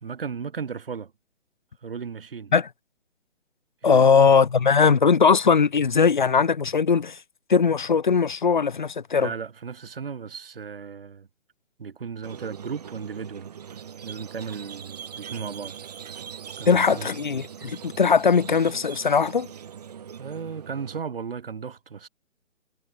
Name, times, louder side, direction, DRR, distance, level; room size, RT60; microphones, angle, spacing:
voice 1, 0.0-1.1 1.8-2.5 3.8-4.2 9.2-11.3 11.8-13.5 14.0-15.8 16.6-17.1 20.2-22.1, right 6 dB, 50° right, 1.9 m, -35 dB
voice 2, 3.8-7.2 7.5-9.3 16.7-19.5, left 5 dB, 40° left, 1.0 m, -20 dB
Squeak, 12.2-21.0, right 8 dB, 30° right, 5.6 m, -41 dB
hypercardioid pair, 180°, 38 cm